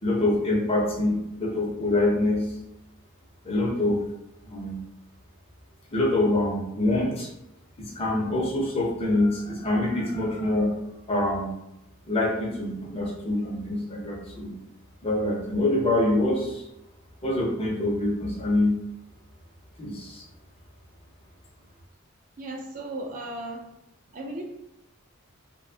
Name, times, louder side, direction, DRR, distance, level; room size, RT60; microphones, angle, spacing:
voice 1, 0.0-2.4 3.4-4.0 4.4-4.7 5.9-7.3 7.8-10.7 11.1-11.5 12.1-14.5 15.0-16.7 17.2-18.7 19.8-20.2, left 1 dB, 30° left, -2 dB, 0.5 m, -25 dB
voice 2, 22.4-23.7 24.1-24.4, right 1 dB, 40° right, 1 dB, 0.3 m, -35 dB
2.6 x 2.1 x 2.6 m, 0.86 s
head